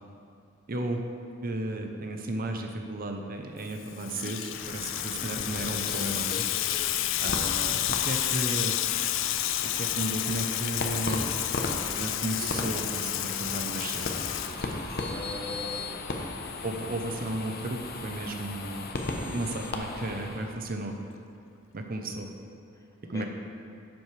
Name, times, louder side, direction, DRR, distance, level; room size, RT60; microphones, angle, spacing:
voice 1, 0.7-1.0 1.4-6.5 7.2-8.8 9.6-11.3 12.0-14.1 16.6-18.9 19.1-21.0 21.7-22.3 23.0-23.3, right 1 dB, 45° right, 4 dB, 0.7 m, -34 dB
Water tap faucet / Sink (filling or washing), 3.7-15.1, left 13 dB, 70° left, 0.4 m, -30 dB
sound 1, 4.5-20.5, left 2 dB, 50° left, 0.8 m, -37 dB
voice 2, 4.9-5.2 15.0-16.1 22.7-23.3, left 1 dB, 15° left, 1 dB, 0.8 m, -42 dB
11.0 x 7.8 x 3.3 m, 2.6 s
head